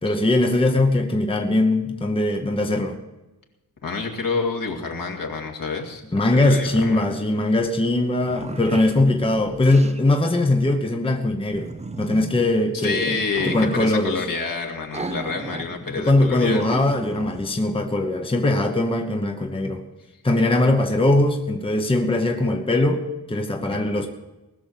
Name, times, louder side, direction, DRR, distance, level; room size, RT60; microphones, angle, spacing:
voice 1, 0.0-3.0 6.1-11.7 12.0-13.1 13.4-14.2 15.9-19.8 20.2-24.1, left 2 dB, 15° left, 0.9 m, -21 dB
voice 2, 3.8-6.0 6.3-7.1 12.7-16.6 23.7-23.9, left 4 dB, 60° left, 2.2 m, -28 dB
sound 1, 7.6-7.7 8.0-10.0 11.5-12.4 13.2-14.0 14.9-15.7 16.0-16.1 16.6-17.5, right 3 dB, 20° right, 0.6 m, -35 dB
19.5 x 6.8 x 7.4 m
wide cardioid pair, 155°, 38 cm